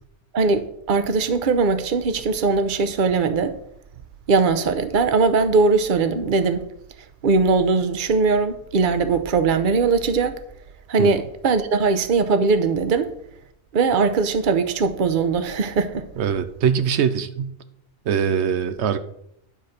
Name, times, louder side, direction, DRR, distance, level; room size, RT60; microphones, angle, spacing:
voice 1, 0.3-3.5 4.3-6.7 7.2-10.3 10.9-13.1 13.7-16.1, right 4 dB, 50° right, 0.9 m, -20 dB
voice 2, 16.2-17.6 18.1-19.0, right 7 dB, 90° right, 0.9 m, -22 dB
10.0 x 4.2 x 6.5 m
omnidirectional pair, 1.1 m